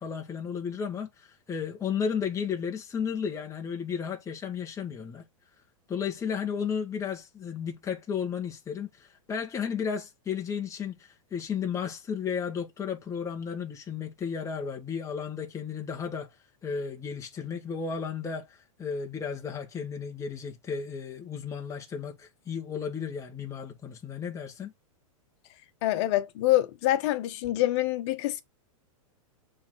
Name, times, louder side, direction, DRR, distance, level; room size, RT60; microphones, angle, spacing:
voice 1, 0.0-5.2 5.9-16.3 16.6-24.7, left 7 dB, 15° left, 1.6 m, -33 dB
voice 2, 25.8-28.4, left 15 dB, 55° left, 1.4 m, -26 dB
7.0 x 3.8 x 4.7 m
hypercardioid pair, 120°, 18 cm